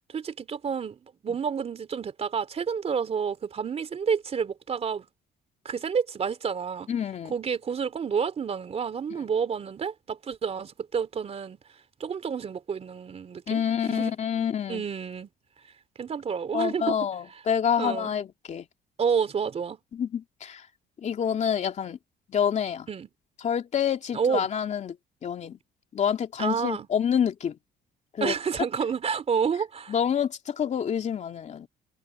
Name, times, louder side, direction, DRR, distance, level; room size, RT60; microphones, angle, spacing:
voice 1, 0.1-5.1 5.6-6.9 7.3-11.6 12.0-14.1 14.7-15.3 16.0-17.0 17.8-18.1 19.0-19.8 22.9-23.1 24.1-24.5 26.4-26.9 28.2-29.9, right 6 dB, 40° right, 3.3 m, -29 dB
voice 2, 6.9-7.3 13.5-14.8 16.5-18.7 19.9-20.6 21.0-22.0 22.3-22.9 23.4-25.0 25.2-25.6 25.9-27.6 28.1-28.3 29.9-31.7, left 8 dB, 45° left, 2.9 m, -27 dB
cardioid pair, 110°, 17 cm